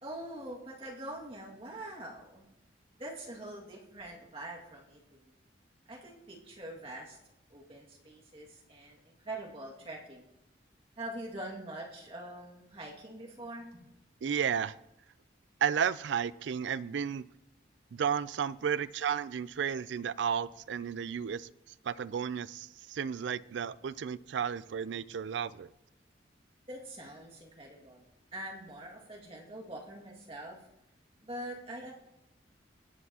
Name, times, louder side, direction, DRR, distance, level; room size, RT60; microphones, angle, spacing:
voice 1, 0.0-2.5 3.0-5.3 5.9-7.2 7.5-9.0 9.2-10.2 11.0-13.9 26.7-28.0 28.3-30.6 31.2-31.9, right 1 dB, 30° right, 2.0 m, -44 dB
voice 2, 14.2-14.8 15.6-17.3 17.9-21.5 21.8-25.7, right 7 dB, 75° right, 0.4 m, -33 dB
19.5 x 8.1 x 2.9 m
head